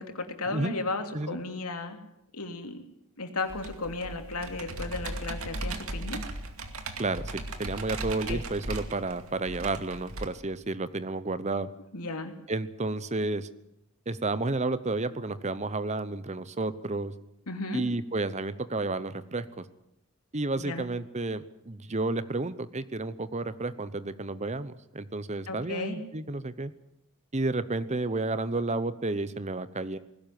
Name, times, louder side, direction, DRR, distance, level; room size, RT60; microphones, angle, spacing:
voice 1, 0.0-2.0 2.3-2.8 3.2-6.2 8.3-8.4 11.9-12.3 17.5-17.8 20.6-20.9 25.5-26.0, left 3 dB, 90° left, 5 dB, 3.0 m, -34 dB
Computer keyboard, 3.5-10.2, right 2 dB, 70° right, 2.4 m, -37 dB
voice 2, 7.0-11.7 12.5-13.5 14.1-17.1 17.7-19.6 20.3-26.7 27.3-30.0, right 2 dB, 30° right, 14 dB, 0.9 m, -31 dB
19.5 x 16.5 x 9.4 m, 0.83 s
head